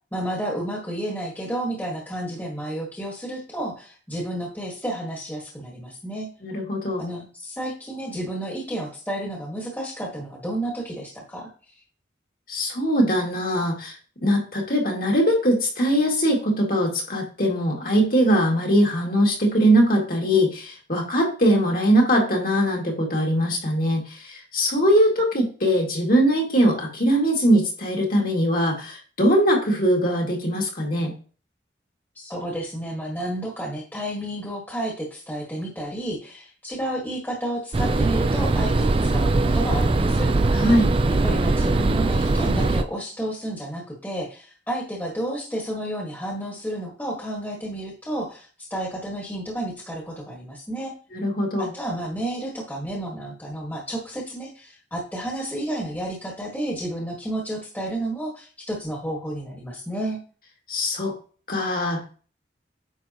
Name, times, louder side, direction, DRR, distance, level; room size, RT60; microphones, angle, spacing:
voice 1, 0.1-6.3 7.0-11.5 32.2-40.3 41.1-50.9 51.6-60.2, right 1 dB, 10° left, -1 dB, 1.6 m, -31 dB
voice 2, 6.4-7.0 12.5-13.9 14.2-31.1 40.5-40.9 51.1-51.7 60.7-61.1 61.5-62.0, equal, 50° left, -1 dB, 2.3 m, -21 dB
sound 1, 37.7-42.8, right 2 dB, 30° right, 0.4 m, -21 dB
9.5 x 6.3 x 3.0 m, 0.39 s
head